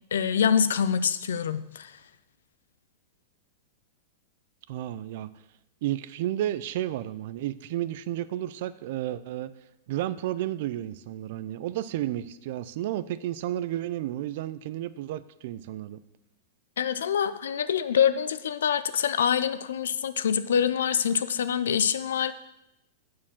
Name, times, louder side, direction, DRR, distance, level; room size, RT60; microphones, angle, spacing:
voice 1, 0.1-1.9 16.8-22.3, left 8 dB, 90° left, 13 dB, 0.5 m, -25 dB
voice 2, 4.7-5.3 5.8-9.5 9.9-16.0, right 13 dB, 60° right, 15 dB, 0.5 m, -32 dB
8.4 x 4.7 x 7.3 m, 0.89 s
hypercardioid pair, 135°, 0 cm